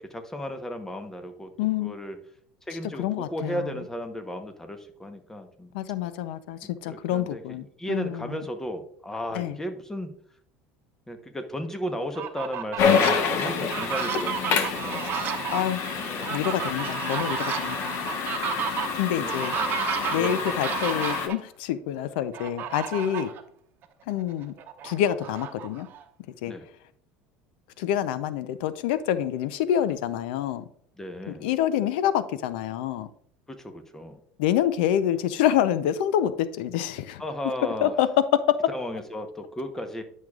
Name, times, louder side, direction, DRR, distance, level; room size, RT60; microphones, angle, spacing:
voice 1, 0.0-1.5 1.8-2.2 2.7-5.7 6.9-7.4 7.8-10.1 11.1-15.4 15.9-16.3 18.6-19.8 20.2-20.7 26.5-26.6 31.0-31.5 33.5-34.2 37.2-37.9 38.7-40.0, equal, 10° left, 7 dB, 1.0 m, -35 dB
voice 2, 1.6-1.9 3.0-3.7 5.7-8.4 9.3-9.6 15.0-15.2 15.5-15.8 16.2-17.9 18.9-19.6 20.1-23.3 24.1-24.5 24.8-25.9 26.4-26.5 27.8-30.7 31.3-33.1 34.4-37.2 37.8-38.6, left 10 dB, 80° left, 14 dB, 0.5 m, -27 dB
Fowl, 12.0-13.1 13.6-21.4 22.3-23.4 23.8-23.9 24.3-26.0, right 8 dB, 40° right, 1.0 m, -32 dB
sound 1, 12.8-21.3, left 6 dB, 55° left, 1.1 m, -28 dB
10.5 x 6.3 x 2.4 m, 0.64 s
supercardioid pair, 125°, 5 cm